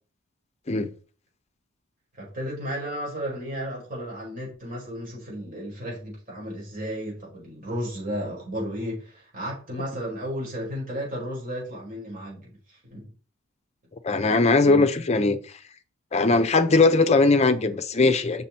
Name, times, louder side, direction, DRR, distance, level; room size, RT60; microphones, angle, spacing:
voice 1, 2.2-13.1 14.6-14.9, equal, 40° right, 4.2 m, -33 dB
voice 2, 14.0-15.4 16.1-18.4, left 3 dB, 30° left, 0.6 m, -20 dB
6.0 x 5.9 x 4.2 m
head